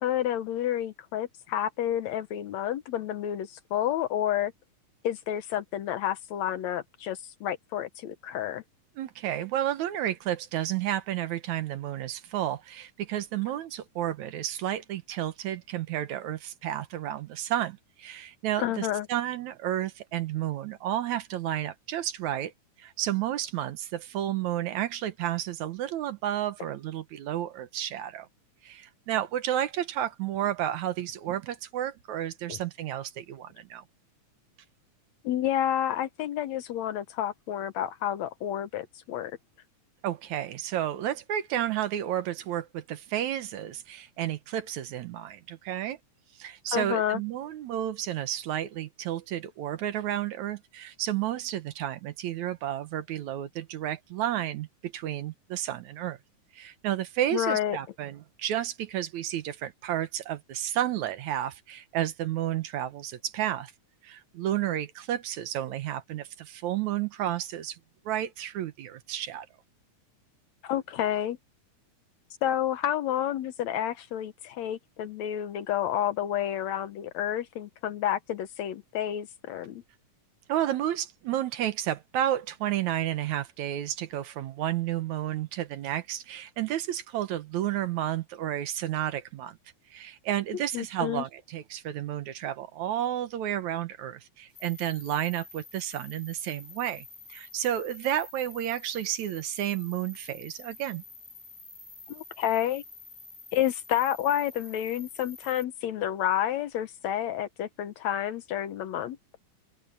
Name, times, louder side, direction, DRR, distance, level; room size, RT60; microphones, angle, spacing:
voice 1, 0.0-4.5 5.0-8.6 18.6-19.1 32.5-32.6 35.2-39.4 46.7-47.2 57.3-57.8 70.6-71.4 72.4-79.8 90.7-91.2 102.1-102.8 103.5-109.2, left 11 dB, 70° left, 2.0 m, -30 dB
voice 2, 9.0-22.5 22.8-28.3 28.6-33.8 40.0-46.0 46.4-56.2 56.5-63.7 64.0-67.8 68.1-69.5 80.5-89.6 89.9-101.0, right 12 dB, 70° right, 2.2 m, -31 dB
sound 1, 94.5-105.6, left 3 dB, 5° left, 6.0 m, -49 dB
open air
omnidirectional pair, 3.6 m